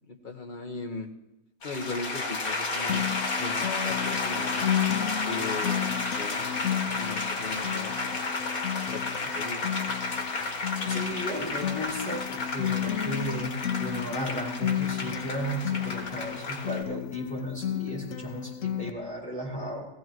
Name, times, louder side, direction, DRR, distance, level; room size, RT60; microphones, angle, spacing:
voice 1, 0.1-1.1 1.6-3.0 3.4-4.6 5.2-8.3 8.9-9.8, left 3 dB, 35° left, 1 dB, 1.6 m, -38 dB
sound 1, 1.6-16.8, left 3 dB, 85° left, 2.0 m, -32 dB
Acoustic guitar, 2.9-18.9, left 10 dB, 65° left, 0.9 m, -33 dB
voice 2, 10.9-19.8, equal, 5° left, -7 dB, 5.7 m, -35 dB
19.0 x 15.5 x 3.1 m, 0.93 s
omnidirectional pair, 1.5 m